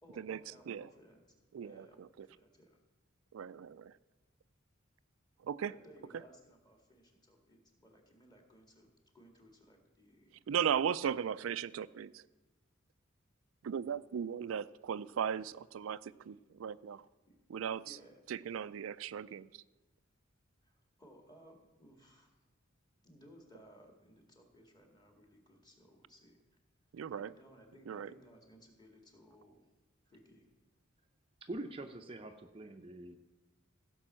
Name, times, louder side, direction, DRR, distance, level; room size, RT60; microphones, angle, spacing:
voice 1, 0.0-2.8 5.7-8.9 9.1-10.4 17.3-17.4 17.8-18.2 20.6-22.4 23.0-26.4 27.1-29.7 30.1-30.5, equal, 20° left, 2 dB, 2.0 m, -60 dB
voice 2, 1.5-2.1 3.3-3.9 5.4-5.7 10.5-12.2 13.6-17.1 17.5-18.0 18.3-19.6 26.9-27.3 27.9-28.1, right 8 dB, 90° right, 15 dB, 0.4 m, -37 dB
voice 3, 31.4-33.2, right 2 dB, 30° right, 6 dB, 0.6 m, -44 dB
15.5 x 5.4 x 7.5 m, 1.1 s
head